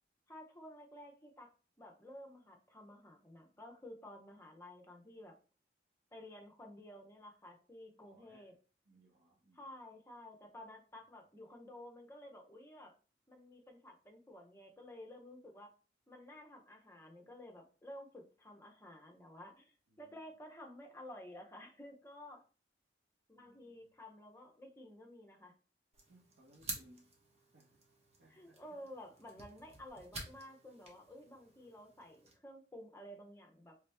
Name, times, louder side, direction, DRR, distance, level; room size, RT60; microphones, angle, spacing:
voice 1, 0.3-1.5 1.8-5.4 6.1-8.5 9.5-12.9 13.3-15.7 16.1-22.4 23.3-25.5 28.3-33.8, left 1 dB, 15° left, 0.6 m, -53 dB
voice 2, 7.9-8.6 8.8-9.6 19.9-20.3 23.3-23.9 26.1-27.1 27.5-27.8 28.2-28.9, right 1 dB, 80° right, 0.7 m, -66 dB
sound 1, 25.9-32.4, right 3 dB, 35° right, 0.8 m, -51 dB
3.3 x 2.8 x 3.3 m
head